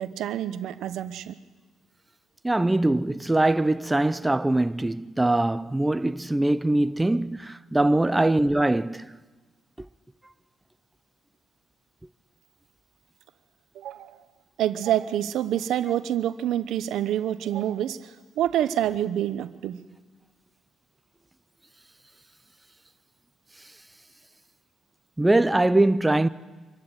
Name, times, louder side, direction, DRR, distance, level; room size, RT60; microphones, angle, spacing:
voice 1, 0.0-1.4 13.7-14.2 14.6-19.8, right 11 dB, 80° right, 0.9 m, -27 dB
voice 2, 2.4-9.1 9.8-9.9 25.2-26.3, right 2 dB, 10° right, 0.6 m, -22 dB
25.0 x 14.5 x 9.0 m
cardioid pair, 90°, 0 cm